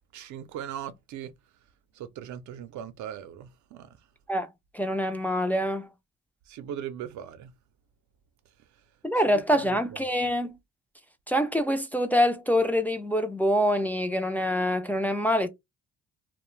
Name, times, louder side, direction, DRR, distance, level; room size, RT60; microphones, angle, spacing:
voice 1, 0.1-1.3 1.9-4.0 6.5-7.5 9.3-9.8, right 10 dB, 75° right, 0.5 m, -39 dB
voice 2, 4.7-5.9 9.0-10.5 11.3-15.5, equal, 5° left, 0.3 m, -25 dB
2.4 x 2.1 x 3.0 m
cardioid pair, 90°, 30 cm